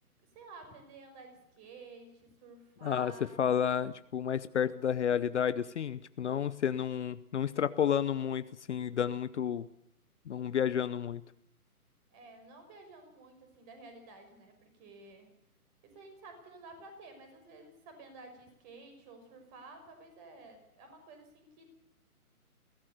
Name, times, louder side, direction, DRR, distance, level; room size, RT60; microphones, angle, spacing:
voice 1, 0.3-3.5 6.2-6.5 12.1-15.3 15.8-21.7, right 3 dB, 25° right, 6 dB, 5.9 m, -52 dB
voice 2, 2.8-9.7 10.3-11.2, left 8 dB, 50° left, 14 dB, 0.9 m, -31 dB
22.0 x 17.0 x 6.9 m, 0.78 s
hypercardioid pair, 145°, 45 cm